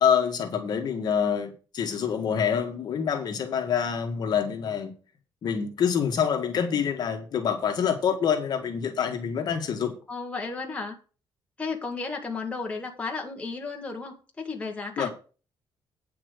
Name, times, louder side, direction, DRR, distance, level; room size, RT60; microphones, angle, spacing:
voice 1, 0.0-4.9 5.4-10.0 15.0-15.1, left 7 dB, 50° left, 4 dB, 1.9 m, -26 dB
voice 2, 10.1-11.0 11.6-15.1, left 4 dB, 15° left, 0 dB, 2.0 m, -33 dB
9.2 x 5.9 x 6.8 m, 0.35 s
cardioid pair, 175°, 9 cm